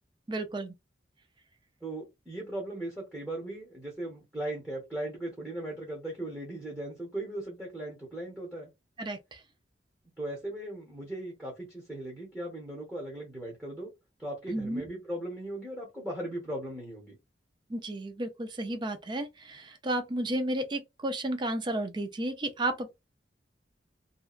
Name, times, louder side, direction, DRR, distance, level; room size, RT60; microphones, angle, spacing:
voice 1, 0.3-0.7 9.0-9.4 14.5-14.8 17.7-22.9, right 1 dB, 25° right, 0.4 m, -32 dB
voice 2, 1.8-8.7 10.2-13.9 14.2-17.2, right 1 dB, 10° right, 0.9 m, -38 dB
2.7 x 2.2 x 2.4 m
head